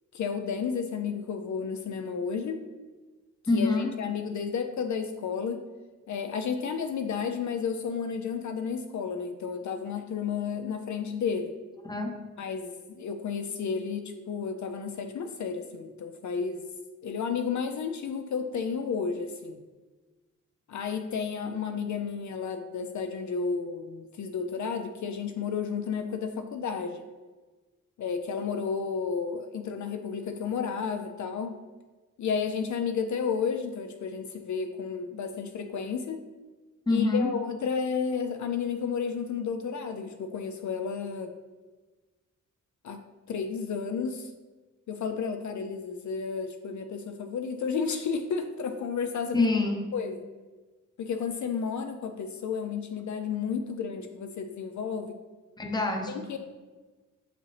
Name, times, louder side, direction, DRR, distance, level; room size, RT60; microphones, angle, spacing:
voice 1, 0.1-2.6 3.5-5.6 6.1-11.5 12.4-16.6 17.0-19.6 20.7-27.0 28.0-31.5 32.2-36.2 36.9-41.3 42.8-43.0 43.3-44.3 44.9-49.5 49.9-50.2 51.0-55.2 56.1-56.4, left 6 dB, 65° left, 7 dB, 0.5 m, -32 dB
voice 2, 3.5-3.9 11.8-12.2 36.9-37.3 49.3-49.9 55.6-56.3, left 2 dB, 15° left, 3 dB, 0.7 m, -26 dB
6.4 x 4.9 x 3.3 m, 1.3 s
wide cardioid pair, 130°, 32 cm